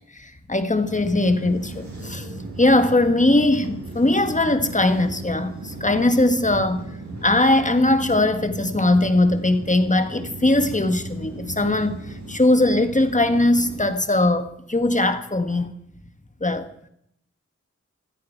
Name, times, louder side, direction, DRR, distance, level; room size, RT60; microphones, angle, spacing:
voice 1, 0.1-6.8 7.2-15.7 16.4-16.7, left 2 dB, 25° left, 1.4 m, -20 dB
sound 1, 0.8-13.9, right 2 dB, 70° right, 6.1 m, -36 dB
15.5 x 13.5 x 4.6 m
wide cardioid pair, 85°, 29 cm